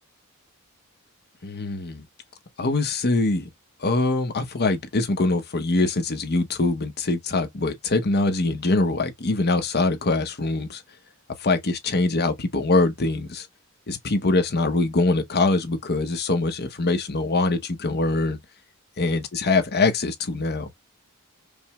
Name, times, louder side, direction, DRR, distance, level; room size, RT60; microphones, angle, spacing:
voice 1, 1.4-2.0 2.6-3.5 3.8-10.8 11.4-13.5 13.9-18.4 19.0-20.8, left 3 dB, 50° left, 0.9 m, -23 dB
5.2 x 2.2 x 3.0 m
head